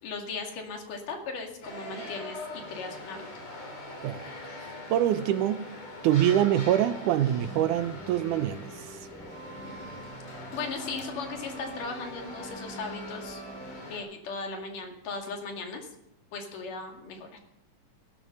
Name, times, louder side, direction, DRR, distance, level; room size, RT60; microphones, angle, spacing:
voice 1, 0.0-3.3 10.5-13.4 13.9-15.9 16.3-17.3, left 4 dB, 90° left, 3.9 m, -37 dB
sound 1, 1.6-14.0, left 2 dB, 60° left, 4.9 m, -42 dB
voice 2, 4.9-5.7 6.0-9.0, right 11 dB, 80° right, 2.2 m, -25 dB
sound 2, 7.4-13.8, right 1 dB, 5° left, 1.6 m, -44 dB
17.5 x 12.5 x 5.4 m
omnidirectional pair, 3.6 m